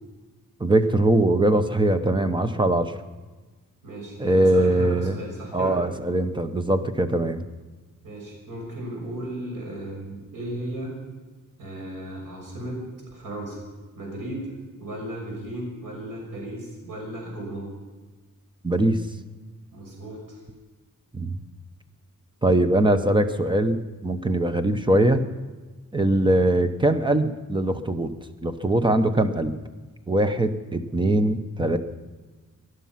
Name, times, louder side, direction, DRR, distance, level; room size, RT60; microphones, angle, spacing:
voice 1, 0.6-3.0 4.2-5.2 5.5-7.4 18.6-19.0 21.1-21.4 22.4-25.2 25.9-28.1 28.4-29.5 30.1-31.8, right 1 dB, 15° right, 9 dB, 0.8 m, -21 dB
voice 2, 3.8-5.7 8.0-10.9 11.6-12.8 13.1-13.6 14.0-14.4 14.8-17.7 19.7-20.4, right 1 dB, 80° right, -2 dB, 6.3 m, -35 dB
20.0 x 11.5 x 5.8 m, 1.3 s
wide cardioid pair, 165°, 32 cm